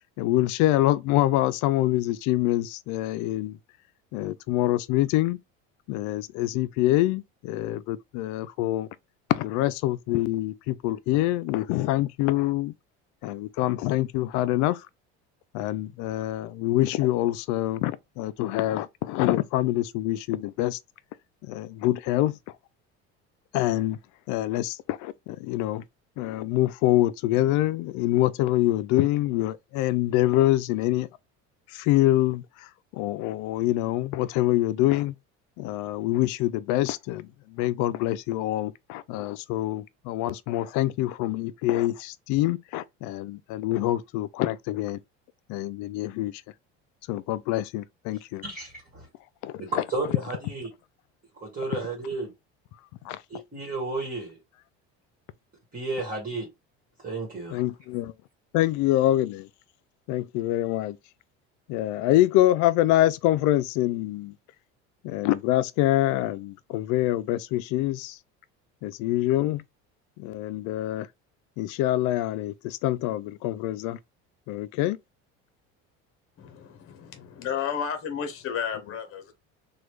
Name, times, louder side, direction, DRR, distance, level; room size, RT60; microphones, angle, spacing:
voice 1, 0.2-3.6 4.1-5.4 5.9-8.9 9.3-12.7 13.2-14.9 15.5-20.8 21.4-22.4 23.5-24.0 24.3-25.8 26.2-31.1 31.7-35.2 35.6-45.0 45.5-46.4 47.1-48.4 49.4-50.1 53.0-53.4 57.5-58.1 58.5-59.5 60.1-61.0 61.7-64.3 65.0-68.2 68.8-69.6 70.2-71.1 71.6-74.0 74.5-75.0, left 15 dB, 65° left, 0.4 m, -25 dB
voice 2, 48.4-49.1 49.6-50.7 51.4-52.3 53.3-54.4 55.7-56.5 57.0-57.6, right 3 dB, 25° right, 1.4 m, -32 dB
voice 3, 76.4-79.3, left 7 dB, 45° left, 0.9 m, -32 dB
3.0 x 2.3 x 3.2 m
supercardioid pair, 95°, 32 cm